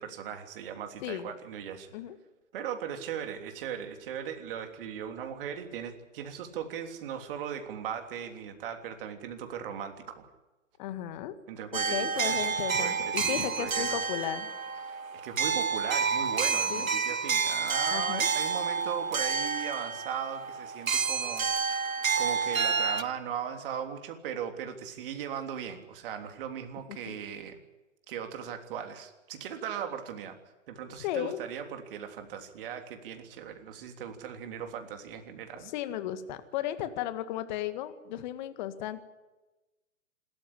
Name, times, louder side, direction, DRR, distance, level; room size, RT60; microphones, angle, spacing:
voice 1, 0.0-1.9 2.5-10.3 11.5-12.5 12.8-14.0 14.9-15.0 15.2-27.6 28.1-30.4 30.7-35.7, right 8 dB, 40° right, 6 dB, 3.3 m, -38 dB
voice 2, 1.0-1.3 1.9-2.2 10.8-11.3 11.9-14.5 16.7-16.9 17.9-18.3 26.9-27.1 31.0-31.4 35.6-39.0, left 12 dB, 35° left, 11 dB, 1.9 m, -35 dB
sound 1, 11.7-23.0, right 5 dB, 80° right, 1.5 m, -29 dB
27.0 x 13.5 x 10.0 m, 1.1 s
figure-of-eight pair, 130°, 40 cm